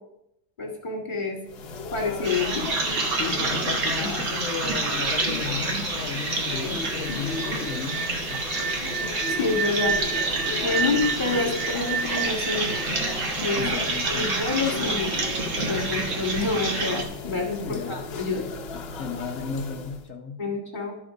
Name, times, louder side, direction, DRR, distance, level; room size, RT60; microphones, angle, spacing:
voice 1, 0.6-1.4 1.9-2.6 9.3-10.0 10.6-12.7 13.4-13.8 14.1-18.4 20.4-20.9, left 4 dB, 25° left, -1 dB, 1.9 m, -28 dB
sound 1, 1.5-20.1, left 4 dB, 75° left, 0.5 m, -37 dB
sound 2, 2.2-17.0, right 2 dB, 50° right, 1.2 m, -28 dB
voice 2, 3.1-8.4 13.6-14.5 17.6-18.0 19.0-20.4, left 5 dB, 55° left, 1 dB, 1.0 m, -34 dB
sound 3, 7.0-13.9, right 6 dB, 80° right, 2.2 m, -31 dB
12.0 x 4.3 x 5.0 m, 0.82 s
omnidirectional pair, 2.0 m